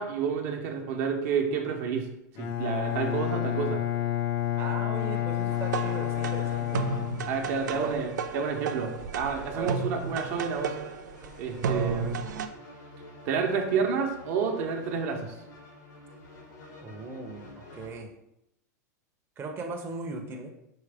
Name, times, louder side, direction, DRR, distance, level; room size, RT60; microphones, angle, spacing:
voice 1, 0.0-2.1 2.4-3.8 7.3-10.7 11.4-12.2 13.3-15.3, right 6 dB, 60° right, 2 dB, 0.8 m, -29 dB
Bowed string instrument, 2.4-7.8, left 13 dB, 50° left, 0.5 m, -30 dB
voice 2, 4.6-6.9 7.7-8.0 9.5-9.8 11.6-12.4 16.8-18.1 19.4-20.5, right 4 dB, 25° right, 1 dB, 0.6 m, -37 dB
sound 1, 4.9-17.9, left 1 dB, 90° left, 1.5 m, -49 dB
sound 2, 5.5-12.5, right 5 dB, 85° right, 0.4 m, -34 dB
4.7 x 3.2 x 3.4 m, 0.82 s
hypercardioid pair, 115°, 9 cm